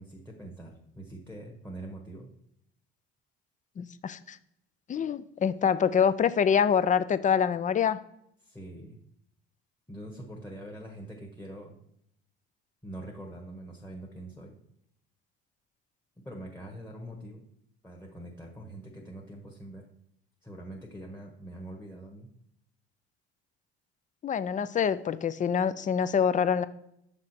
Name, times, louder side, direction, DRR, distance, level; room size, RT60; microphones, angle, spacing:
voice 1, 0.0-2.3 8.4-9.0 9.9-11.8 12.8-14.5 16.2-17.4 17.8-19.8 20.4-22.3, right 1 dB, 5° left, -1 dB, 1.3 m, -44 dB
voice 2, 3.8-4.4 4.9-8.0 24.2-26.7, left 7 dB, 25° left, 15 dB, 0.4 m, -25 dB
6.1 x 3.8 x 4.3 m, 0.73 s
hypercardioid pair, 60°, 30 cm